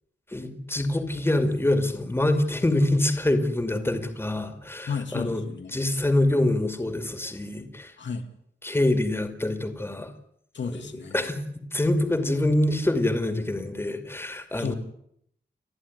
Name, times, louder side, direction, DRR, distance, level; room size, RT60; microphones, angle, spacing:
voice 1, 0.3-5.4 5.7-7.9 8.6-10.1 11.1-11.4 11.7-14.7, left 1 dB, 15° left, 8 dB, 2.4 m, -25 dB
voice 2, 4.9-5.7 8.0-8.3 10.5-11.3 14.5-14.7, left 5 dB, 85° left, 5 dB, 2.7 m, -33 dB
29.5 x 11.0 x 9.8 m, 0.71 s
wide cardioid pair, 165°, 18 cm